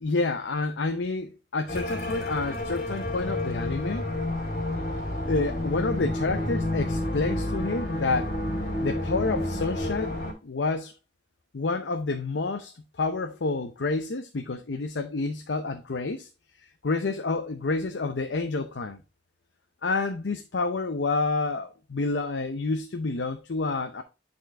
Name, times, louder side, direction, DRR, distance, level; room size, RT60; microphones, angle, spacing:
voice 1, 0.0-4.1 5.3-8.4 8.8-10.2 10.4-10.9 11.5-12.7 13.0-16.3 16.8-19.0 19.8-24.0, left 3 dB, 85° left, 0.7 m, -29 dB
sound 1, 1.7-10.3, left 1 dB, 55° left, 2.8 m, -30 dB
9.1 x 4.4 x 3.3 m
head